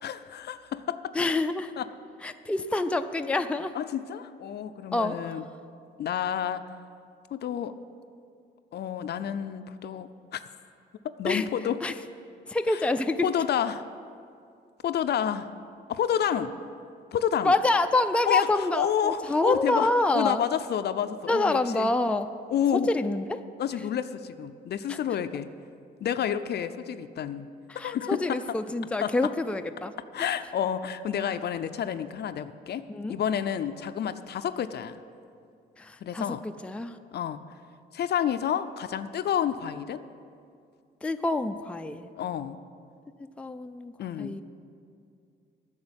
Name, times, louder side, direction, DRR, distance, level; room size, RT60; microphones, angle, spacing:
voice 1, 0.0-1.2 1.8-1.9 3.7-5.4 6.0-6.6 7.3-7.7 8.7-10.4 11.0-11.8 12.7-12.8 13.2-13.9 14.8-15.5 15.9-16.5 17.1-17.5 18.3-21.9 22.5-22.9 23.6-25.5 26.0-27.5 27.8-28.4 29.0-29.1 30.1-35.0 36.0-36.4 37.1-37.4 37.9-40.0 42.2-42.6 44.0-44.4, left 9 dB, 55° left, 11 dB, 0.5 m, -29 dB
voice 2, 1.1-1.7 2.2-3.7 4.9-5.3 11.2-11.5 11.8-11.9 12.5-13.3 17.4-20.4 21.3-22.3 22.9-23.4 24.9-25.0 27.7-29.9 30.2-30.3 32.9-33.2 35.8-37.0 41.0-42.1 43.4-44.4, left 2 dB, 5° left, 7 dB, 0.4 m, -27 dB
9.6 x 6.6 x 8.8 m, 2.4 s
cardioid pair, 90°, 20 cm